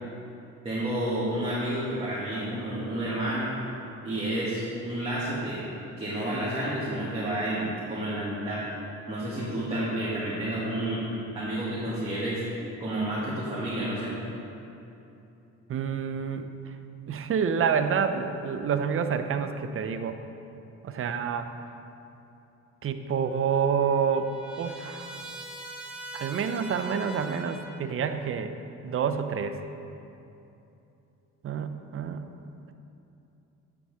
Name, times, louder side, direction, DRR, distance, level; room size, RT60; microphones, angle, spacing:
voice 1, 0.6-3.5 4.0-5.6 6.0-8.6 9.1-11.1 11.3-12.4 12.8-14.2, right 1 dB, 20° right, -10 dB, 1.9 m, -30 dB
voice 2, 15.7-16.5 17.1-20.2 20.8-21.5 22.8-24.3 24.6-25.1 26.1-28.5 28.8-29.6 31.4-32.2, right 6 dB, 45° right, 9 dB, 0.6 m, -28 dB
Trumpet, 23.2-28.0, right 2 dB, 5° right, 1.0 m, -43 dB
8.6 x 6.9 x 3.5 m, 2.8 s
cardioid pair, 90°, 30 cm